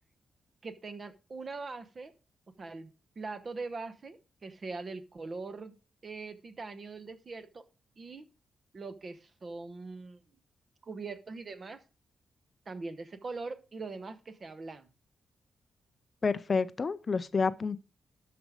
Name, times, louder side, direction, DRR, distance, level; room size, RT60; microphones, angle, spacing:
voice 1, 0.6-2.1 2.6-5.8 6.0-7.6 8.0-8.3 8.7-10.2 10.8-11.8 12.7-14.9, right 3 dB, 35° right, 1.0 m, -42 dB
voice 2, 16.2-17.8, left 4 dB, 35° left, 0.4 m, -29 dB
12.5 x 5.0 x 4.8 m
wide cardioid pair, 135°, 0 cm